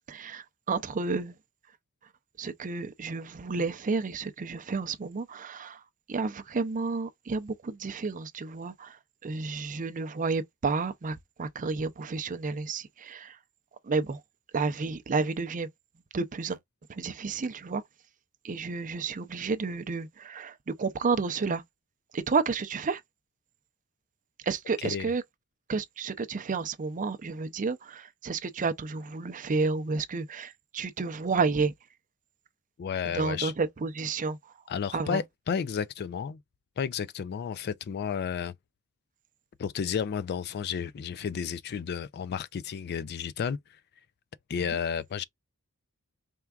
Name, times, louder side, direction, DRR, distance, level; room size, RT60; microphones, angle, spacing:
voice 1, 0.1-1.3 2.4-5.8 6.1-13.4 13.8-14.2 14.5-15.7 16.1-16.6 16.9-17.8 18.4-21.6 22.1-23.0 24.4-25.2 25.7-31.7 33.1-34.4 34.9-35.2, right 4 dB, 35° right, 0.5 m, -31 dB
voice 2, 32.8-33.5 34.7-36.4 36.8-38.5 39.6-43.6 44.5-45.2, left 7 dB, 45° left, 0.3 m, -32 dB
4.5 x 3.4 x 2.3 m
head